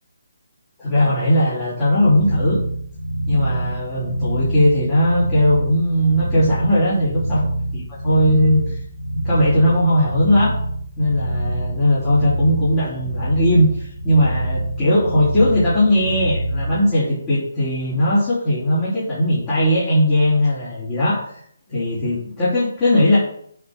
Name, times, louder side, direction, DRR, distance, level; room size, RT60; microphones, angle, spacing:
voice 1, 0.8-2.6 3.3-7.4 7.7-8.8 9.2-10.5 11.0-21.4 21.7-23.2, left 1 dB, 20° left, -10 dB, 3.7 m, -18 dB
sound 1, 1.9-16.8, right 1 dB, 60° left, 2.8 m, -25 dB
8.3 x 4.6 x 6.6 m, 0.64 s
figure-of-eight pair, 145°, 0 cm